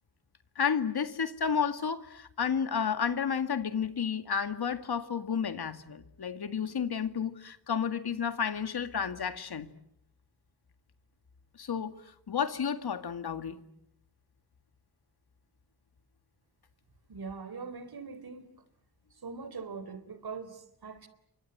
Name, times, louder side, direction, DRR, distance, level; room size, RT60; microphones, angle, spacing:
voice 1, 0.6-9.7 11.6-11.9 12.3-13.6, left 7 dB, 70° left, 2.1 m, -31 dB
voice 2, 17.1-18.5 19.2-21.1, right 5 dB, 65° right, 3.8 m, -42 dB
30.0 x 25.0 x 8.0 m
wide cardioid pair, 90°, 40 cm